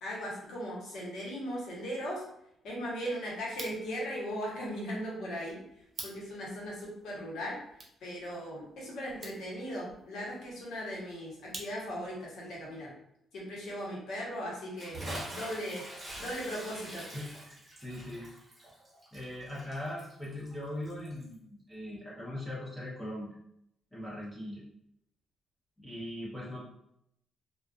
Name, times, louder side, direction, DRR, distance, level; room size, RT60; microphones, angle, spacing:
voice 1, 0.0-2.2 2.6-5.6 6.0-7.6 8.0-12.9 13.3-15.8 16.2-17.0, equal, 75° left, -4 dB, 1.0 m, -38 dB
sound 1, 3.4-12.2, right 3 dB, 45° right, 0.6 m, -51 dB
Bathtub (filling or washing) / Splash splatter, 14.8-21.3, right 1 dB, 25° right, 0.9 m, -44 dB
voice 2, 17.1-18.3 19.1-23.3 23.9-24.6 25.8-26.6, left 1 dB, 10° left, -8 dB, 0.7 m, -40 dB
2.4 x 2.3 x 2.4 m, 0.76 s
cardioid pair, 90°, 0 cm